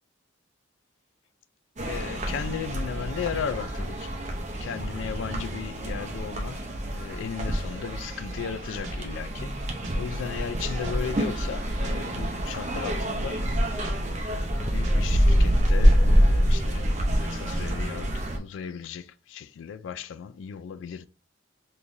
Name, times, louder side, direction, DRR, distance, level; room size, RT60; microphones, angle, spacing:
voice 1, 1.8-4.2 4.6-6.6 6.9-9.6 10.0-13.5 14.3-21.1, left 7 dB, 75° left, 0.3 m, -36 dB
sound 1, 1.8-18.4, equal, 35° right, 0.7 m, -26 dB
sound 2, 8.8-9.0 9.8-10.0 10.8-11.0 11.8-12.0 12.8-13.0 13.8-14.0 14.8-15.0 15.8-16.0, right 1 dB, 80° right, 0.8 m, -41 dB
3.7 x 3.0 x 2.6 m
head